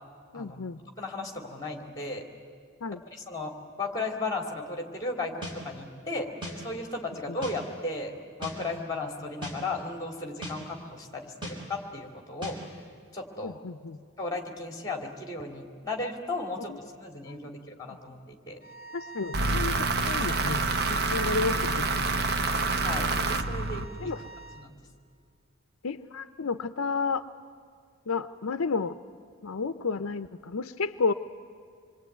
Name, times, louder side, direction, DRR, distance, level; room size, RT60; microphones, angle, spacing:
voice 1, 0.3-0.8 2.8-3.0 13.4-14.0 16.7-16.8 17.3-17.5 17.9-18.0 18.9-20.6 20.9-22.2 24.0-24.2 25.8-27.2 28.1-28.9 29.4-31.1, left 4 dB, 70° left, 11 dB, 0.6 m, -31 dB
voice 2, 1.0-2.2 3.1-3.5 3.8-6.3 6.6-12.6 13.1-13.6 14.2-18.6 22.7-23.1 23.5-24.2 24.5-24.7, left 2 dB, 15° left, 3 dB, 2.8 m, -35 dB
sound 1, 5.4-5.6 6.4-6.6 7.4-7.6 8.4-8.6 9.4-9.6 10.4-10.6 11.4-11.6 12.4-12.6, right 1 dB, 20° right, 4.8 m, -37 dB
sound 2, 18.6-24.7, right 3 dB, 40° left, 1.6 m, -44 dB
sound 3, 19.3-24.3, right 3 dB, 45° right, 1.0 m, -27 dB
27.0 x 23.0 x 9.3 m, 2.2 s
head